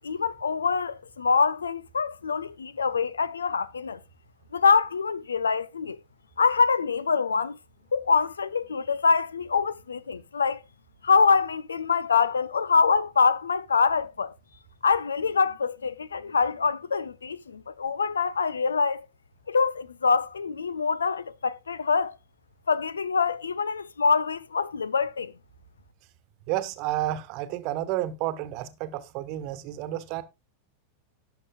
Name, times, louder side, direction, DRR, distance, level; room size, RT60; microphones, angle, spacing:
voice 1, 0.0-4.0 4.5-6.0 6.4-7.6 7.9-10.6 11.0-14.3 14.8-19.1 19.5-22.2 22.7-25.3, left 5 dB, 70° left, 0.5 m, -25 dB
voice 2, 26.5-30.2, right 14 dB, 40° right, 1.2 m, -31 dB
18.0 x 6.6 x 2.4 m
figure-of-eight pair, 90°, 0 cm